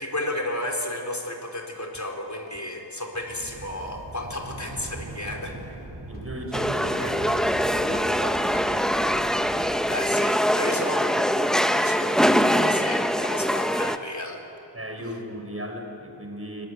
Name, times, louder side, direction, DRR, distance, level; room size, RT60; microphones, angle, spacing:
voice 1, 0.0-5.6 9.9-14.4 15.0-15.1, left 1 dB, 40° left, 1 dB, 4.0 m, -33 dB
sound 1, 1.9-2.0 2.5-2.6 3.1-3.2 3.7-3.8 4.3-4.4 4.9-5.0 5.5-5.6 6.1-6.2 6.7-6.8 7.3-7.4 7.9-8.0 8.5-8.6, left 1 dB, 20° left, 2.9 m, -47 dB
sound 2, 3.2-10.1, right 1 dB, 50° right, 5.9 m, -41 dB
voice 2, 6.1-9.6 10.6-11.0 14.7-16.7, equal, 30° right, 4 dB, 5.0 m, -36 dB
sound 3, 6.5-14.0, equal, ahead, 1.0 m, -23 dB
23.0 x 19.5 x 10.0 m, 2.9 s
wide cardioid pair, 40°, 45 cm